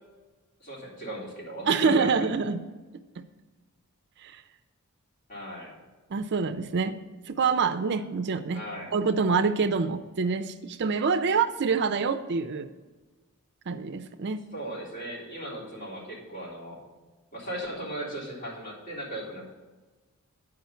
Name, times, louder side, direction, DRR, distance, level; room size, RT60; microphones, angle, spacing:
voice 1, 0.6-2.3 5.3-5.7 8.5-8.9 14.5-16.8 17.3-19.5, right 1 dB, 40° left, -5 dB, 3.4 m, -37 dB
voice 2, 1.7-2.6 4.2-4.4 6.1-7.0 7.3-8.6 8.9-12.7 13.7-14.5, right 5 dB, 50° right, 9 dB, 0.5 m, -26 dB
9.2 x 5.0 x 6.9 m, 1.3 s
head